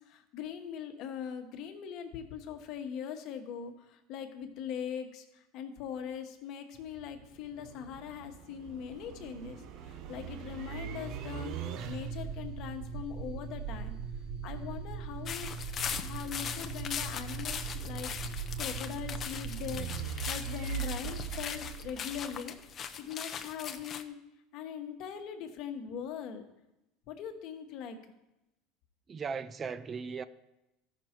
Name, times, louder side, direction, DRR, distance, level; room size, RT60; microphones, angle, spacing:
voice 1, 0.0-14.0 14.4-15.5 16.0-22.6 23.0-24.2 24.5-26.4 27.1-28.0, left 8 dB, 55° left, 1.2 m, -41 dB
sound 1, 6.7-22.7, right 6 dB, 55° right, 0.8 m, -40 dB
sound 2, 15.3-24.0, left 7 dB, 35° left, 0.6 m, -40 dB
voice 2, 29.1-30.2, right 5 dB, 30° right, 0.4 m, -37 dB
13.5 x 6.1 x 4.4 m
supercardioid pair, 110°, 0 cm